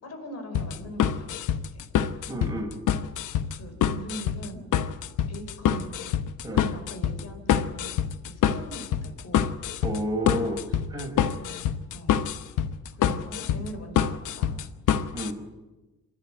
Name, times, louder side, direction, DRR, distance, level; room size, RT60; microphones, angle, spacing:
voice 1, 0.0-1.9 3.5-4.7 5.3-5.9 6.5-8.0 8.3-9.4 11.4-12.2 12.9-14.6, equal, 55° left, 6 dB, 5.3 m, -41 dB
sound 1, 0.5-15.3, left 9 dB, 85° left, 1.0 m, -26 dB
voice 2, 2.3-2.7 6.4-6.6 9.8-11.1 15.1-15.4, equal, 10° right, 0 dB, 6.6 m, -31 dB
26.5 x 11.0 x 9.2 m, 1.1 s
cardioid pair, 90°, 30 cm